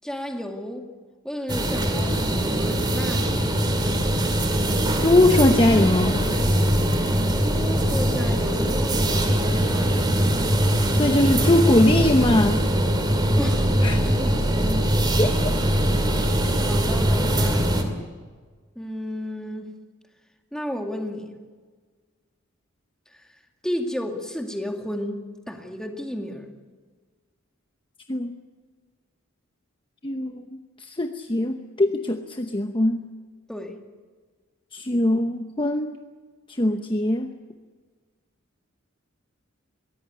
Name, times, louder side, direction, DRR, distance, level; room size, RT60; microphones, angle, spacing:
voice 1, 0.0-0.9 1.2-3.7 7.4-10.3 13.4-13.7 14.0-14.9 16.6-17.8 18.8-19.7 20.5-21.4 23.1-23.3 23.6-26.5 33.5-33.8, equal, 5° left, 3 dB, 2.1 m, -33 dB
sound 1, 1.5-17.8, right 1 dB, 20° right, 2.5 m, -22 dB
voice 2, 5.0-6.2 10.9-12.6 13.8-14.0 15.2-15.3 16.4-16.6 28.1-28.4 30.0-33.0 34.7-36.0 36.5-37.3, left 1 dB, 25° left, 5 dB, 0.9 m, -21 dB
22.5 x 17.0 x 9.7 m, 1.5 s
head